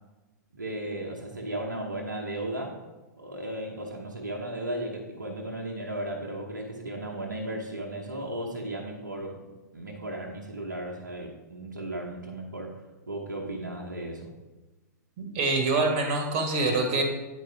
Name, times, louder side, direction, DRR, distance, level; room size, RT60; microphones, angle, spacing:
voice 1, 0.5-2.8 3.2-9.4 9.7-12.7 13.1-14.3, right 1 dB, 85° right, -1 dB, 1.0 m, -35 dB
voice 2, 15.2-17.0, right 3 dB, 45° right, 4 dB, 1.4 m, -25 dB
9.1 x 4.7 x 3.3 m, 1.2 s
figure-of-eight pair, 110°, 10 cm